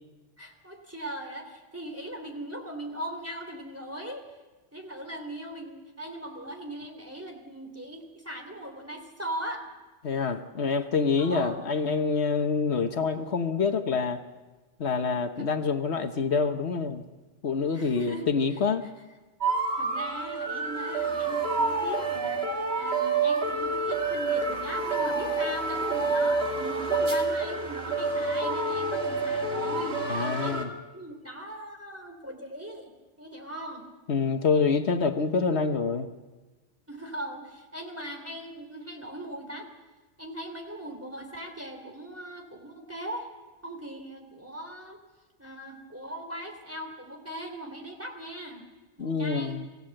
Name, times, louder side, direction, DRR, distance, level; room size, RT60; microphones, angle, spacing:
voice 1, 0.4-4.2 4.7-9.6 11.2-11.6 15.4-15.5 17.7-18.6 19.7-33.8 36.9-39.7 40.2-43.3 43.6-45.0 45.4-48.7 49.0-49.6, right 1 dB, 10° right, 4 dB, 3.2 m, -39 dB
voice 2, 10.0-14.2 14.8-17.0 17.4-18.8 30.1-30.7 34.1-36.1 49.0-49.7, left 5 dB, 70° left, 7 dB, 1.4 m, -26 dB
sound 1, 19.4-30.6, right 3 dB, 60° right, 2.4 m, -28 dB
26.5 x 16.5 x 7.8 m, 1.2 s
omnidirectional pair, 1.1 m